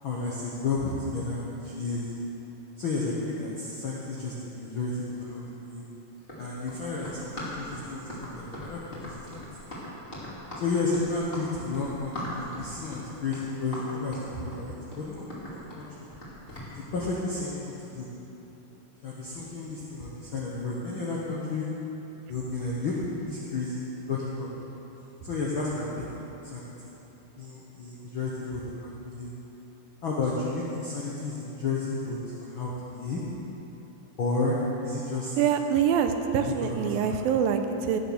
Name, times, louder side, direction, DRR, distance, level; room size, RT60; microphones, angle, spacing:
voice 1, 0.0-2.1 2.8-5.9 6.4-9.4 10.5-16.1 16.7-18.1 19.0-21.7 22.3-23.0 23.3-24.5 25.2-26.9 27.4-29.3 30.0-33.3 34.2-34.6 34.8-35.3 36.4-37.2, left 3 dB, 70° left, -5 dB, 1.2 m, -32 dB
Run, 6.2-16.7, left 1 dB, 20° left, 2.2 m, -40 dB
voice 2, 35.4-38.0, right 8 dB, 90° right, 7 dB, 2.5 m, -25 dB
15.5 x 6.9 x 6.5 m, 3.0 s
omnidirectional pair, 4.1 m